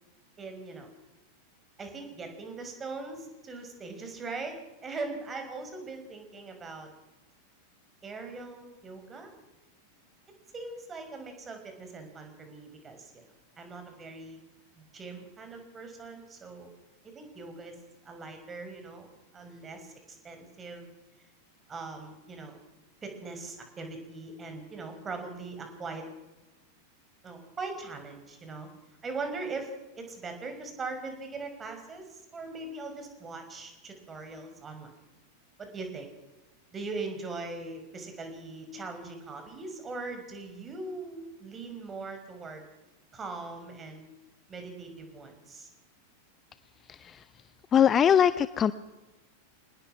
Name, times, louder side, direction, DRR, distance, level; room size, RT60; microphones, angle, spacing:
voice 1, 0.4-0.9 1.8-6.9 8.0-9.3 10.5-13.2 13.6-14.4 14.8-16.7 17.0-17.8 18.0-19.1 19.3-19.9 20.2-20.9 21.7-22.6 23.0-26.0 27.2-28.7 29.0-34.9 35.6-36.1 36.7-42.6 43.1-44.1 44.5-45.7, right 3 dB, 20° right, 5 dB, 5.8 m, -40 dB
voice 2, 46.9-47.2 47.7-48.7, left 8 dB, 25° left, 15 dB, 0.7 m, -22 dB
26.0 x 19.5 x 6.0 m, 1.0 s
figure-of-eight pair, 90°, 0 cm